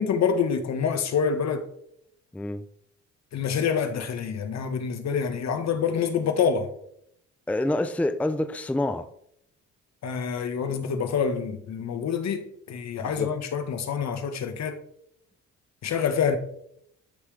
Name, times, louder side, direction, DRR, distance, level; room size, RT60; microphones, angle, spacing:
voice 1, 0.0-1.7 3.3-6.7 10.0-14.8 15.8-16.4, left 6 dB, 60° left, 1.4 m, -26 dB
voice 2, 2.3-2.6 7.5-9.1 13.0-13.3, left 1 dB, 5° left, 0.5 m, -27 dB
12.5 x 5.7 x 3.3 m
cardioid pair, 90°, 30 cm